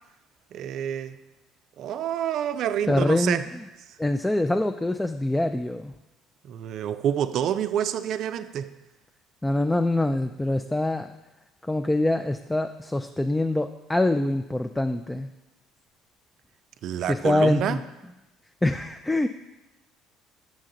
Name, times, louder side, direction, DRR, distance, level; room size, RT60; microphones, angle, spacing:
voice 1, 0.5-1.2 1.8-3.4 6.5-8.7 16.8-17.8, right 9 dB, 60° right, 11 dB, 0.4 m, -28 dB
voice 2, 2.9-3.4 4.0-5.9 9.4-11.1 11.6-15.3 17.1-17.8 18.6-19.3, left 1 dB, 10° left, 7 dB, 0.3 m, -24 dB
6.3 x 6.3 x 3.8 m, 1.0 s
hypercardioid pair, 65°, 0 cm